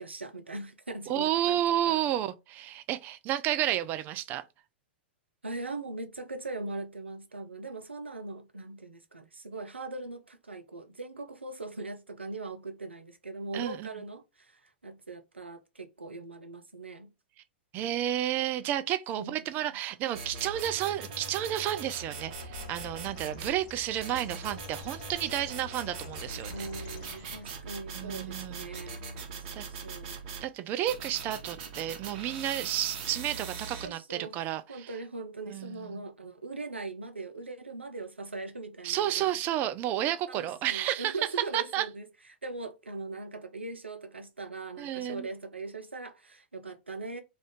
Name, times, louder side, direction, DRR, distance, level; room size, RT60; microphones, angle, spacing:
voice 1, 0.0-2.2 5.4-17.1 19.2-19.8 26.5-30.2 33.8-39.4 40.3-42.1 42.4-47.2, right 3 dB, 85° right, 0.5 m, -40 dB
voice 2, 1.1-4.4 13.5-13.9 17.7-26.5 27.9-28.7 29.5-29.6 30.4-34.9 35.5-36.0 38.8-41.1 41.5-41.8 44.8-45.3, right 12 dB, 30° right, 0.4 m, -31 dB
sound 1, 20.1-23.6 24.0-30.4 30.9-33.9, right 4 dB, 50° right, 1.0 m, -41 dB
Bird, 22.1-27.6, left 7 dB, 45° left, 0.4 m, -49 dB
2.5 x 2.4 x 3.4 m
figure-of-eight pair, 100°, 6 cm